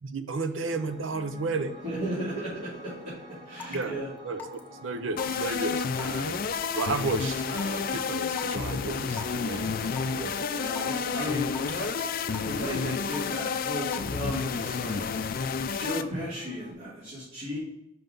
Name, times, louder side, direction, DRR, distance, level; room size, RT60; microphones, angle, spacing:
voice 1, 0.0-1.7 3.7-3.9 4.2-6.4 6.7-9.8 10.1-10.5, right 3 dB, 75° right, 10 dB, 0.6 m, -33 dB
Piano, 0.6-16.7, equal, 25° right, 1.0 m, -48 dB
voice 2, 1.8-2.9 3.4-4.1 10.5-11.9 12.4-15.0 15.8-17.6, equal, 45° right, -12 dB, 3.0 m, -34 dB
Raindrop / Water tap faucet / Drip, 3.6-3.8 4.4-4.7 5.2-5.5 6.0-6.3 6.8-7.0 7.6-7.7 8.4-8.6 9.1-9.3 10.0-10.2 10.8-11.0 11.5-11.8 12.3-12.7 13.1-13.4 13.9-14.2, left 5 dB, 10° left, 0.8 m, -40 dB
sound 1, 5.2-16.0, left 5 dB, 45° left, 0.4 m, -30 dB
5.8 x 5.7 x 5.3 m, 0.85 s
head